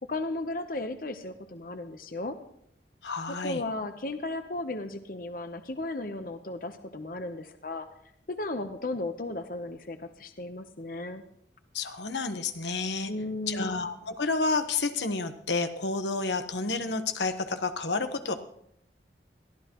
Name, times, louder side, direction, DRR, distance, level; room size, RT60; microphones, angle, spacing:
voice 1, 0.0-2.4 3.3-7.9 8.3-11.2 13.1-13.8, left 2 dB, 50° left, 8 dB, 0.9 m, -35 dB
voice 2, 3.0-3.6 11.7-13.1 13.5-18.3, left 3 dB, 85° left, 8 dB, 1.1 m, -30 dB
22.0 x 14.5 x 3.0 m, 0.72 s
head